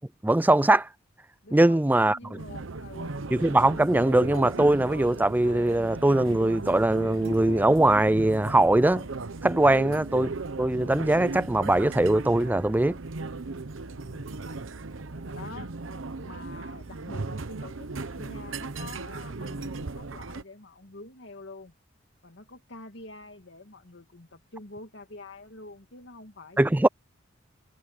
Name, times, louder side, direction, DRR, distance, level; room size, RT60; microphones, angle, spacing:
voice 1, 0.2-0.9 1.5-2.2 3.3-9.1 9.4-10.3 10.6-13.0 26.6-26.9, right 1 dB, 10° right, 0.4 m, -21 dB
voice 2, 1.4-3.2 14.0-14.4 15.3-15.8 16.2-21.7 22.2-26.9, left 2 dB, 65° left, 2.2 m, -46 dB
sound 1, 2.4-20.4, right 3 dB, 85° right, 1.0 m, -37 dB
head